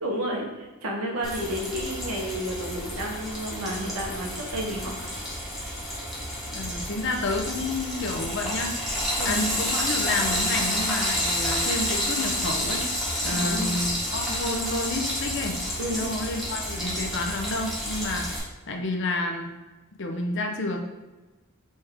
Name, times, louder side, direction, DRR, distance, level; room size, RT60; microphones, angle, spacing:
voice 1, 0.0-5.1 9.2-9.4 13.3-13.8 15.8-16.1, equal, 85° right, -1 dB, 1.0 m, -31 dB
Frying (food), 1.2-18.4, equal, ahead, 1.0 m, -30 dB
voice 2, 6.5-8.8 9.2-12.9 13.2-15.6 15.9-18.3 18.7-19.5 20.0-20.8, left 2 dB, 55° left, 2 dB, 0.6 m, -30 dB
4.2 x 3.4 x 3.6 m, 1.1 s
head